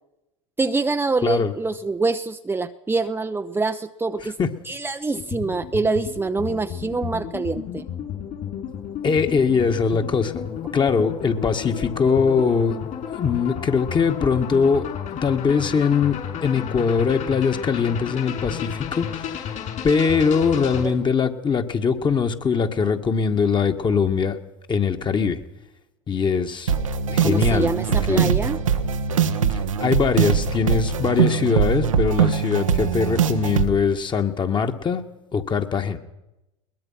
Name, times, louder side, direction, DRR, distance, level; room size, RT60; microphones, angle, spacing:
voice 1, 0.6-4.4 4.7-7.8 20.8-21.0 27.2-28.6, right 3 dB, 15° right, 7 dB, 0.8 m, -25 dB
sound 1, 5.1-20.9, left 8 dB, 50° left, 5.9 m, -32 dB
voice 2, 9.0-14.9 15.2-19.4 19.8-24.4 24.7-25.4 26.1-26.8 27.1-28.3 29.8-35.0 35.3-36.0, left 5 dB, 30° left, 6 dB, 2.1 m, -22 dB
sound 2, 26.7-33.7, right 7 dB, 90° right, 1.4 m, -22 dB
22.0 x 20.5 x 5.9 m, 0.93 s
hypercardioid pair, 85°, 16 cm